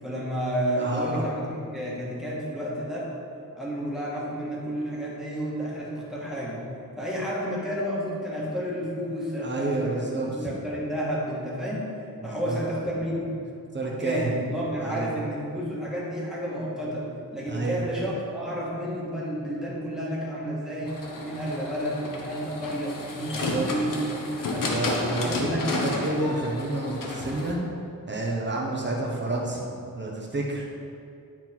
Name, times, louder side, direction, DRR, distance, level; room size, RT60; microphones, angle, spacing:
voice 1, 0.0-3.1 3.5-6.6 7.0-11.9 12.2-13.3 13.8-24.7 25.1-25.9, equal, ahead, -6 dB, 1.6 m, -31 dB
voice 2, 0.8-1.3 9.4-10.5 12.2-12.6 13.7-14.3 14.8-15.1 17.5-17.8 23.3-23.7 24.6-25.6 25.8-27.6 28.1-29.6 29.9-30.7, right 2 dB, 30° right, -2 dB, 1.1 m, -29 dB
sound 1, 20.9-27.5, left 2 dB, 65° left, 0.9 m, -31 dB
10.5 x 4.0 x 4.5 m, 2.6 s
wide cardioid pair, 160°, 35 cm